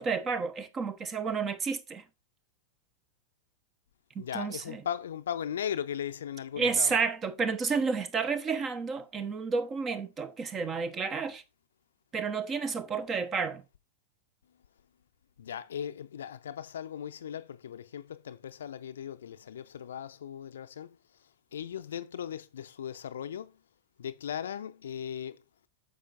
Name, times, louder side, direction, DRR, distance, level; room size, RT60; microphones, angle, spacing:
voice 1, 0.0-2.0 4.1-4.8 6.6-11.4 12.1-13.6, right 5 dB, 25° right, 1.0 m, -31 dB
voice 2, 4.2-6.9 15.4-21.0 21.5-23.6 24.0-25.4, left 9 dB, 65° left, 0.6 m, -38 dB
9.1 x 6.8 x 2.5 m
figure-of-eight pair, 90°, 0 cm